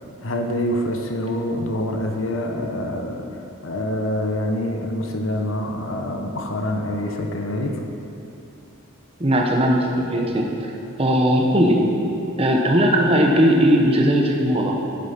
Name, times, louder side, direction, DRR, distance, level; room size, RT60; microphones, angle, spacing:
voice 1, 0.2-7.8, left 1 dB, 75° left, 3 dB, 1.0 m, -26 dB
voice 2, 9.2-10.7 11.0-11.8 12.4-14.8, equal, 30° right, 0 dB, 1.0 m, -18 dB
10.5 x 7.6 x 5.9 m, 2.9 s
head